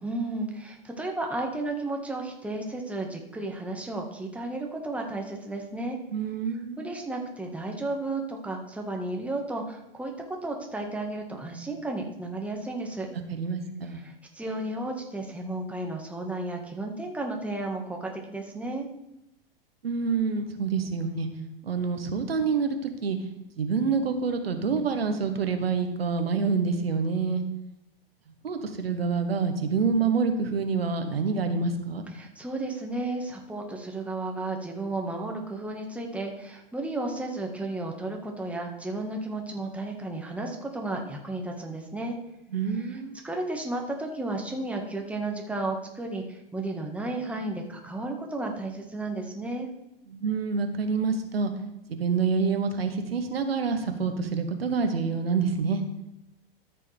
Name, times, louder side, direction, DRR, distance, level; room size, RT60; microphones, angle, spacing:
voice 1, 0.0-6.0 6.8-13.1 13.9-18.9 32.1-42.2 42.8-43.0 43.2-49.7, right 2 dB, 5° right, 1 dB, 1.6 m, -33 dB
voice 2, 6.1-6.9 13.3-14.0 19.8-21.3 21.6-23.2 23.6-27.4 28.4-32.0 42.5-43.1 50.1-51.5 51.9-55.8, right 5 dB, 90° right, 7 dB, 1.3 m, -27 dB
13.5 x 6.7 x 3.4 m, 0.86 s
hypercardioid pair, 105°, 29 cm